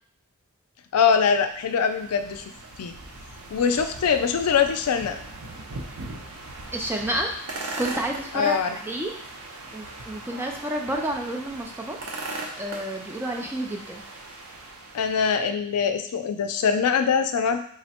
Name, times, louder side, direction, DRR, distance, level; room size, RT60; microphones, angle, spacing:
voice 1, 0.9-2.4 2.8-2.9 3.5-5.2 8.3-8.8 14.9-17.6, left 6 dB, 85° left, 7 dB, 0.4 m, -23 dB
sound 1, 1.3-15.4, right 2 dB, 75° right, 0.7 m, -39 dB
voice 2, 6.7-7.3 7.8-9.1 9.7-12.0 12.6-14.0, right 1 dB, 10° right, 1 dB, 0.4 m, -30 dB
3.7 x 2.1 x 4.2 m, 0.67 s
head